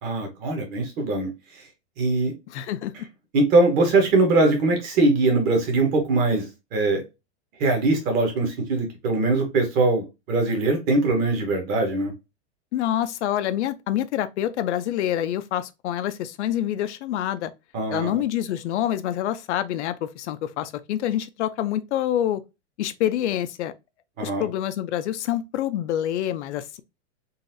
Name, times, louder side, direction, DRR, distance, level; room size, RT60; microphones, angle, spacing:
voice 1, 0.0-1.6 2.0-2.3 3.3-7.0 7.6-12.1 17.7-18.2 24.2-24.5, right 2 dB, 25° right, 0.9 m, -22 dB
voice 2, 2.5-2.9 12.7-17.5 17.9-22.4 22.8-23.7 24.2-26.8, left 11 dB, 70° left, 0.5 m, -26 dB
3.9 x 2.5 x 2.5 m
supercardioid pair, 165°, 36 cm